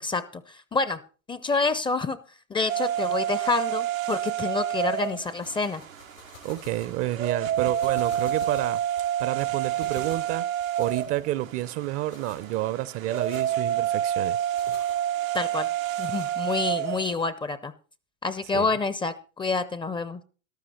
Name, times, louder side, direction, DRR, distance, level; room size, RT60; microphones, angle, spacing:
voice 1, 0.0-1.0 1.3-2.2 2.5-5.8 15.3-15.7 16.0-17.7 18.2-20.2, left 3 dB, 15° left, 0.5 m, -28 dB
sound 1, 2.7-17.1, right 11 dB, 85° right, 0.8 m, -29 dB
sound 2, 4.7-16.7, left 6 dB, 80° left, 5.8 m, -50 dB
voice 2, 6.4-8.8 9.2-10.5 10.8-14.4 14.7-14.8 18.5-18.7, right 15 dB, 35° right, 0.6 m, -29 dB
13.0 x 12.5 x 4.2 m
hypercardioid pair, 100°, 39 cm